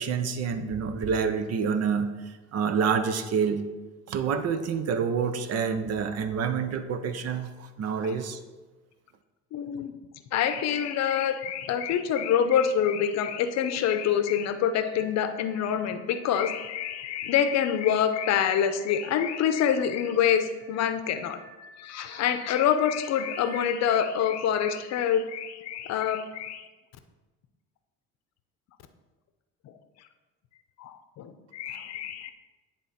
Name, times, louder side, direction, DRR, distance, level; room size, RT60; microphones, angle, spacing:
voice 1, 0.0-3.6 4.1-8.4 31.7-31.8, right 6 dB, 55° right, 10 dB, 0.7 m, -28 dB
voice 2, 9.5-9.9 10.3-21.4 21.8-26.6 30.8-32.3, left 8 dB, 65° left, 9 dB, 0.7 m, -26 dB
sound 1, 13.7-23.9, right 1 dB, 15° right, 2.4 m, -52 dB
10.0 x 3.6 x 4.3 m, 1.2 s
supercardioid pair, 85°, 30 cm